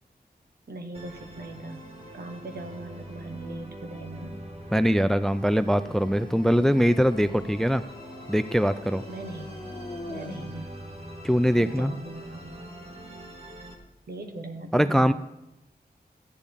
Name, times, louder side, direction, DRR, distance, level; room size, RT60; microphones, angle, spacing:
voice 1, 0.7-1.8 2.1-4.4 5.6-5.7 9.1-9.5 10.1-11.0 11.6-12.7 14.1-15.1, right 2 dB, 70° right, 4 dB, 1.4 m, -40 dB
Musical instrument, 0.9-13.7, right 1 dB, 40° right, 1.7 m, -43 dB
sound 1, 1.7-3.4 5.3-10.7, left 2 dB, 30° left, 0.7 m, -45 dB
voice 2, 4.7-7.8 8.3-9.0 11.2-11.9 14.7-15.1, equal, ahead, 12 dB, 0.4 m, -22 dB
13.5 x 9.8 x 3.6 m, 0.90 s
wide cardioid pair, 95°, 17 cm